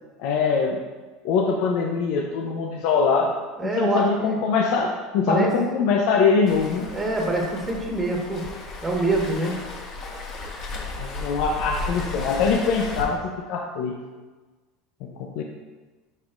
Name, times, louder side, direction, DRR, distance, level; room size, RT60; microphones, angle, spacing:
voice 1, 0.2-0.8 1.2-3.3 3.6-6.9 11.0-14.0 15.0-15.4, left 5 dB, 65° left, 2 dB, 0.7 m, -23 dB
voice 2, 3.6-4.3 5.3-5.5 6.9-8.5 8.8-9.6, right 2 dB, 15° right, -1 dB, 1.5 m, -25 dB
Waves surf, 6.5-13.0, left 3 dB, 45° left, 1.4 m, -34 dB
10.5 x 5.5 x 2.6 m, 1.3 s
supercardioid pair, 130°, 0 cm